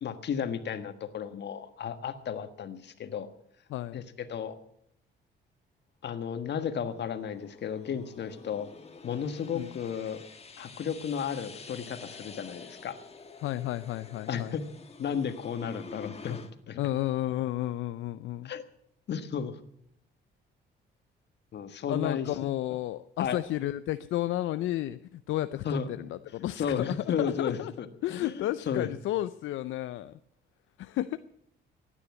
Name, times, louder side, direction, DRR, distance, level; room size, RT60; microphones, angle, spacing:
voice 1, 0.0-3.3 3.9-4.6 6.0-8.7 9.0-10.2 10.6-13.0 14.3-14.6 15.0-16.9 18.4-18.6 19.1-19.6 21.5-22.3 23.2-23.4 25.6-25.9 26.6-28.9, left 7 dB, 60° left, 10 dB, 1.5 m, -33 dB
voice 2, 3.7-4.0 9.5-9.8 13.4-14.5 16.8-18.5 21.9-27.7 28.0-30.2 30.8-31.2, left 14 dB, 80° left, 13 dB, 0.5 m, -32 dB
sound 1, 6.4-16.5, left 4 dB, 30° left, 1.7 m, -48 dB
15.5 x 9.9 x 8.3 m, 0.72 s
cardioid pair, 90°, 20 cm